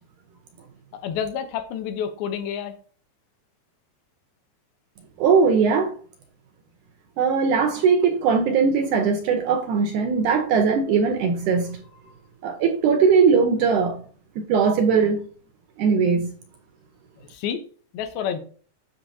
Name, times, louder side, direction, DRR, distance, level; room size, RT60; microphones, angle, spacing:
voice 1, 1.0-2.8 17.2-17.6 17.9-18.4, left 8 dB, 85° left, 2.8 m, -29 dB
voice 2, 5.2-5.9 7.2-11.8 12.4-14.0 14.4-15.2 15.8-16.3, right 5 dB, 75° right, 2.0 m, -20 dB
8.3 x 6.6 x 2.7 m
omnidirectional pair, 4.3 m